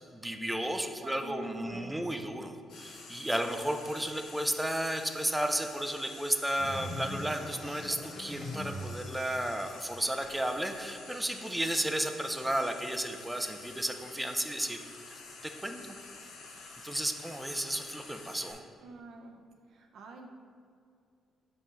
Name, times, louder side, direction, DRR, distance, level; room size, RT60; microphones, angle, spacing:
voice 1, 0.1-14.8 15.1-15.8 16.8-18.6, right 1 dB, 5° right, 6 dB, 0.6 m, -33 dB
voice 2, 1.0-2.3 18.8-19.4 19.7-20.3, right 3 dB, 70° right, 2 dB, 0.7 m, -47 dB
Frying (food), 2.7-18.5, left 3 dB, 85° left, 1.0 m, -49 dB
sound 1, 6.6-9.0, left 1 dB, 45° left, 1.1 m, -40 dB
5.4 x 4.3 x 6.1 m, 2.4 s
cardioid pair, 90°, 0 cm